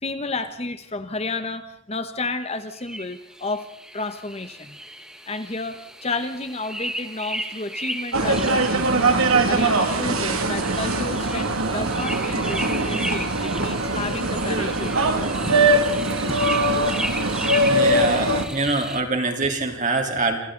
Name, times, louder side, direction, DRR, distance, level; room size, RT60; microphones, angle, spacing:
voice 1, 0.0-3.7 3.9-4.8 5.3-15.3, left 3 dB, 30° left, 10 dB, 1.0 m, -31 dB
sound 1, 2.4-19.0, right 1 dB, 5° right, 1.3 m, -35 dB
sound 2, 8.1-18.4, right 2 dB, 85° right, 2.3 m, -22 dB
voice 2, 17.7-20.4, right 3 dB, 35° right, 3 dB, 3.4 m, -24 dB
27.5 x 27.0 x 3.9 m, 0.73 s
head